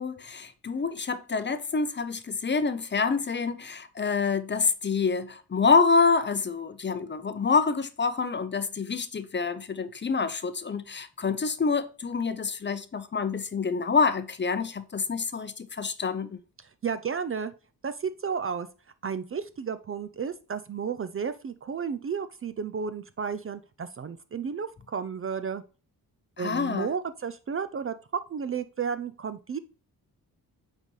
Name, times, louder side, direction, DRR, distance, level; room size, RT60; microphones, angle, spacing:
voice 1, 0.0-16.4 26.4-26.9, left 5 dB, 30° left, 0.6 m, -27 dB
voice 2, 16.6-17.5 17.8-18.7 19.0-25.6 26.4-27.9 28.3-29.6, right 6 dB, 35° right, 0.4 m, -32 dB
8.8 x 4.1 x 3.2 m
cardioid pair, 100°, 39 cm